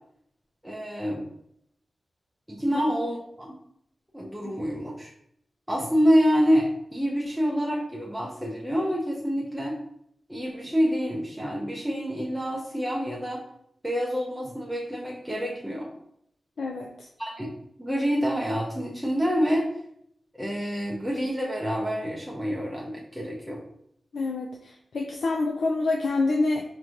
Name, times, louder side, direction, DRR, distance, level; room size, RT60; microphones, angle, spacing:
voice 1, 0.6-1.3 2.5-3.6 4.1-5.1 5.7-9.8 10.3-13.4 13.8-15.9 17.2-17.5 17.8-19.7 20.3-23.6, equal, 5° right, -4 dB, 0.5 m, -27 dB
voice 2, 16.6-17.1 24.1-26.6, left 3 dB, 80° left, 0 dB, 0.4 m, -27 dB
5.1 x 3.0 x 2.4 m, 0.72 s
wide cardioid pair, 165°, 0 cm